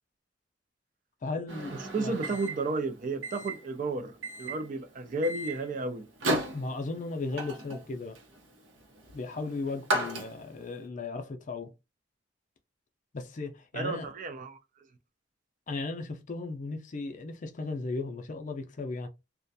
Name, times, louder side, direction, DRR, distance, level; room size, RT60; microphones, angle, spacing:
voice 1, 1.2-2.1 6.5-8.2 9.1-11.7 13.1-14.1 15.7-19.1, left 3 dB, 45° left, 0.4 m, -36 dB
Microwave oven, 1.5-10.7, right 1 dB, 80° right, 0.8 m, -36 dB
voice 2, 1.9-6.1 13.7-14.6, right 3 dB, 45° right, 0.4 m, -32 dB
2.3 x 2.2 x 2.6 m
head